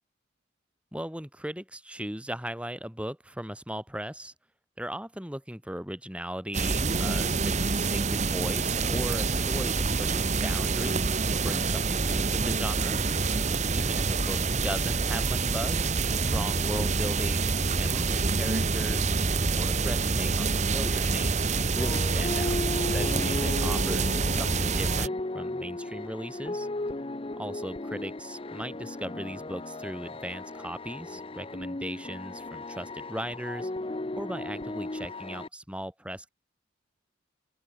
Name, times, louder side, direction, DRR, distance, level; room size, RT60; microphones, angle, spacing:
voice 1, 0.9-4.3 4.8-13.0 13.7-19.1 19.5-26.7 27.4-33.7 34.2-36.3, equal, 5° right, 4.5 m, -38 dB
sound 1, 6.5-25.1, right 4 dB, 35° right, 1.0 m, -27 dB
sound 2, 21.8-35.5, left 2 dB, 25° left, 0.7 m, -36 dB
open air
head